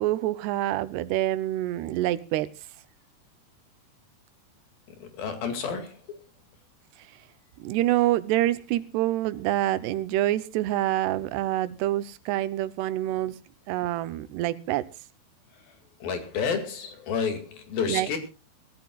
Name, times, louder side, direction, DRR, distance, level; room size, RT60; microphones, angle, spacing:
voice 1, 0.0-2.5 7.6-13.3 13.7-14.8 17.9-18.2, right 14 dB, 85° right, 2.9 m, -26 dB
voice 2, 5.0-6.2 16.0-18.2, left 6 dB, 65° left, 3.9 m, -30 dB
24.5 x 13.5 x 2.3 m
omnidirectional pair, 4.7 m